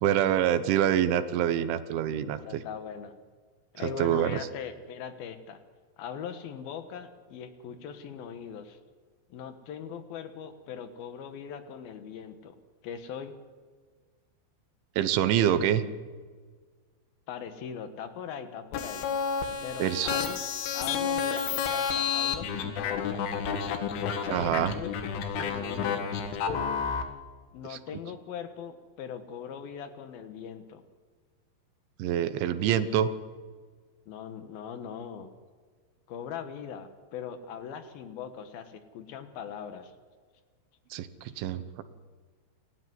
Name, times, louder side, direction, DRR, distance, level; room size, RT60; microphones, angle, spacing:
voice 1, 0.0-2.6 3.8-4.4 15.0-15.8 19.8-20.2 24.3-24.7 27.7-27.8 32.0-33.1 40.9-41.8, right 10 dB, 80° right, 11 dB, 3.5 m, -26 dB
voice 2, 2.3-3.1 3.7-5.6 6.0-8.8 9.3-12.6 12.8-13.3 17.3-19.1 19.6-20.5 20.7-23.2 24.3-26.3 27.5-30.8 34.1-35.3 36.1-39.9, left 7 dB, 65° left, 8 dB, 2.9 m, -40 dB
sound 1, 18.7-27.0, left 6 dB, 90° left, 4.3 m, -30 dB
29.5 x 12.5 x 9.7 m, 1.5 s
omnidirectional pair, 5.4 m